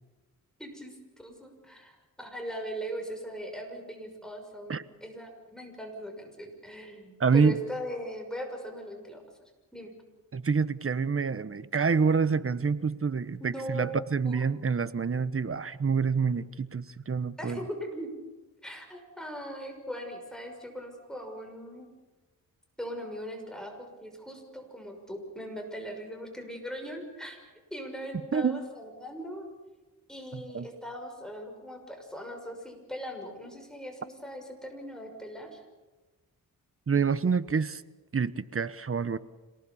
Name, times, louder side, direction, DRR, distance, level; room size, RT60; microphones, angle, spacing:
voice 1, 0.6-9.9 13.4-13.9 14.2-14.4 17.4-18.1 18.6-21.9 22.8-27.4 27.7-29.5 30.1-35.6, equal, ahead, 3 dB, 6.3 m, -40 dB
voice 2, 7.2-7.6 10.3-17.6 28.3-28.6 30.3-30.7 36.9-37.8 38.1-39.2, right 5 dB, 40° right, 15 dB, 1.1 m, -27 dB
27.5 x 18.5 x 7.2 m, 1.2 s
cardioid pair, 70°, 35 cm